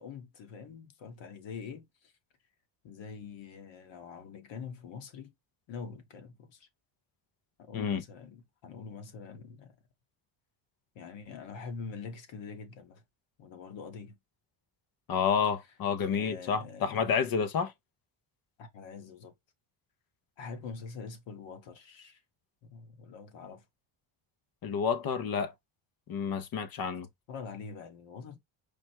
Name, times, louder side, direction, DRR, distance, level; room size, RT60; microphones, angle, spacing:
voice 1, 0.0-1.9 2.8-5.3 5.7-6.7 7.6-9.7 10.9-13.0 13.4-14.2 16.0-17.2 18.6-19.3 20.4-22.2 22.6-23.6 27.3-28.4, left 5 dB, 65° left, 1.3 m, -44 dB
voice 2, 15.1-17.7 24.6-25.5 26.1-27.1, left 6 dB, 45° left, 0.6 m, -29 dB
4.9 x 2.1 x 4.4 m
cardioid pair, 175°, 49 cm